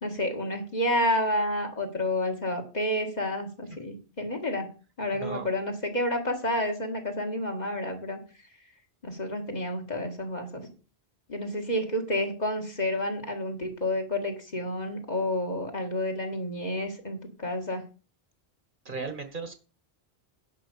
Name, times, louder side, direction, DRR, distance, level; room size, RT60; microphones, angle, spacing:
voice 1, 0.0-4.7 5.0-8.2 9.0-10.7 11.3-17.8, left 1 dB, 40° left, 3 dB, 2.1 m, -30 dB
voice 2, 18.8-19.5, right 4 dB, 50° right, 8 dB, 1.6 m, -36 dB
10.5 x 5.2 x 6.9 m, 0.35 s
omnidirectional pair, 1.1 m